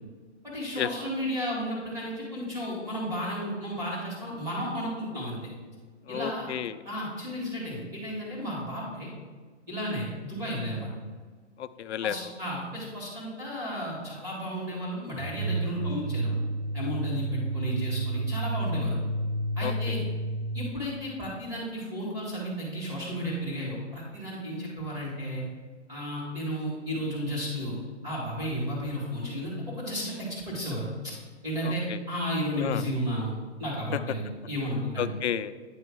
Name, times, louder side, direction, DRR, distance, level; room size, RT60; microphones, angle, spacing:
voice 1, 0.4-5.5 6.1-6.5 6.8-9.1 9.7-10.9 12.0-16.4 16.7-19.0 19.6-20.0 20.5-25.4 25.9-27.8 28.0-31.1 31.4-33.3 33.6-35.1, equal, 10° right, -7 dB, 1.8 m, -33 dB
voice 2, 6.1-6.8 11.6-12.3 19.6-19.7 31.6-32.0 32.6-32.8 35.0-35.5, left 10 dB, 65° left, 13 dB, 0.5 m, -31 dB
sound 1, 15.2-20.8, right 2 dB, 70° right, 1.0 m, -31 dB
9.4 x 3.1 x 6.1 m, 1.5 s
hypercardioid pair, 165°, 35 cm